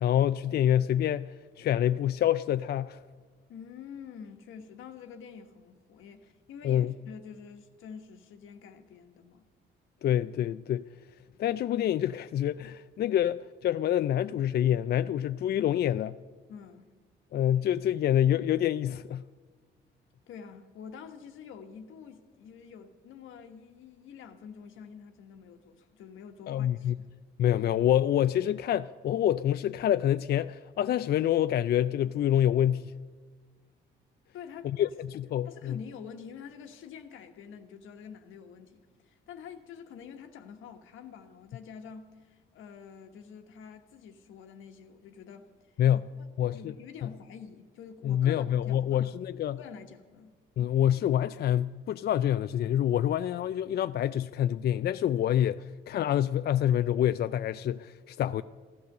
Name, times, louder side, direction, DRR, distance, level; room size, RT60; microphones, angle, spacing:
voice 1, 0.0-3.0 6.6-6.9 10.0-10.9 11.4-16.2 17.3-19.2 26.5-26.9 27.4-32.9 34.8-35.8 45.8-46.0 46.4-46.7 48.0-49.6 50.6-58.4, left 11 dB, 55° left, 0.4 m, -27 dB
voice 2, 3.5-9.5 16.5-16.9 20.3-27.1 34.3-34.9 35.4-45.5 45.9-49.1 49.6-50.3, left 7 dB, 85° left, 1.3 m, -47 dB
15.0 x 12.5 x 6.6 m
cardioid pair, 90°, 20 cm